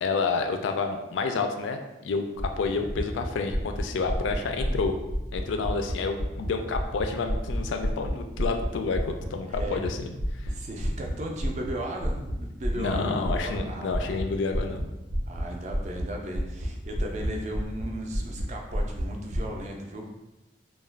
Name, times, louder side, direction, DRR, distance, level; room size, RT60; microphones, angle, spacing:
voice 1, 0.0-5.0 5.3-10.5 12.8-14.9, left 4 dB, 75° left, 5 dB, 0.3 m, -29 dB
sound 1, 2.4-6.5 6.7-9.9 10.1-10.5 10.8-11.1 11.4-11.7 12.0-12.4 12.6-13.0 13.2-13.6 13.9-14.2 14.5-14.8 15.1-15.4 15.7-16.0 16.3-17.3 17.5-17.8 18.1-18.4 18.7-19.4, equal, 75° right, 0.6 m, -29 dB
voice 2, 9.5-9.8 10.5-14.4 15.3-20.1, right 1 dB, 35° right, 1 dB, 0.4 m, -36 dB
2.3 x 2.1 x 3.2 m, 0.98 s
head